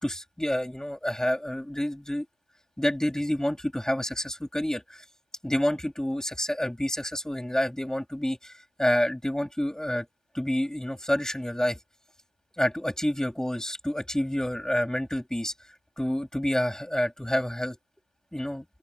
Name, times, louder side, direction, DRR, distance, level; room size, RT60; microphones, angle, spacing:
voice 1, 0.0-2.2 2.8-5.0 5.4-10.1 10.3-11.8 12.6-17.8 18.3-18.7, left 1 dB, 5° left, 4.2 m, -28 dB
supercardioid pair, 65°, 11 cm